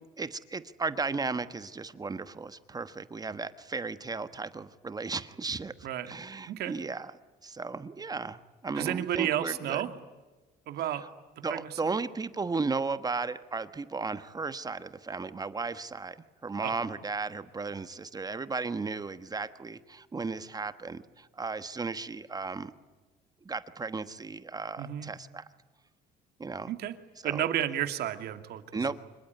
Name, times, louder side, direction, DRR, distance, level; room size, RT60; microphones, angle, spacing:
voice 1, 0.2-5.7 6.1-7.1 7.4-9.8 11.4-16.2 16.4-22.7 23.4-25.5 26.4-26.7 27.2-27.5 28.7-28.9, right 4 dB, 20° right, 12 dB, 1.2 m, -35 dB
voice 2, 8.8-9.9 10.7-11.0 11.4-11.9 16.6-16.7 24.8-25.1 26.7-26.9 27.2-28.9, right 11 dB, 70° right, 9 dB, 2.5 m, -32 dB
26.0 x 22.5 x 9.6 m, 1.2 s
cardioid pair, 110°, 17 cm